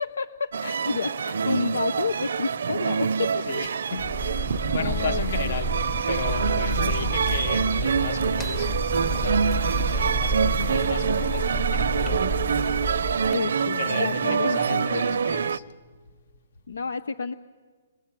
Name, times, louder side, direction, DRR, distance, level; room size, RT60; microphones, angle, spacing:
voice 1, 0.0-3.4 4.5-5.6 6.7-7.1 10.6-10.8 13.2-15.2 16.7-17.3, left 5 dB, 80° left, 0.8 m, -31 dB
sound 1, 0.5-15.6, right 6 dB, 75° right, 0.7 m, -26 dB
voice 2, 3.5-9.4 9.8-12.2 13.6-15.6, left 6 dB, 65° left, 1.5 m, -35 dB
sound 2, 4.0-13.3, right 2 dB, 10° left, 0.9 m, -29 dB
29.5 x 21.5 x 9.1 m
hypercardioid pair, 145°, 0 cm